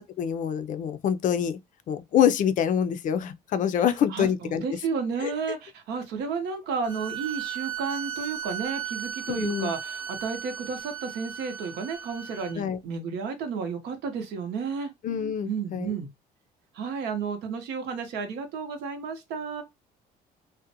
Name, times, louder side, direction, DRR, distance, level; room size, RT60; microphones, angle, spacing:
voice 1, 0.0-1.6 1.9-4.6 5.2-5.3 9.3-9.7 12.6-12.8 15.0-15.9, left 9 dB, 50° left, 0.4 m, -26 dB
voice 2, 3.8-14.9 15.4-16.1 16.7-19.6, right 5 dB, 80° right, 0.8 m, -32 dB
sound 1, 6.8-12.5, right 9 dB, 30° right, 0.8 m, -36 dB
2.5 x 2.1 x 2.7 m
cardioid pair, 110°, 17 cm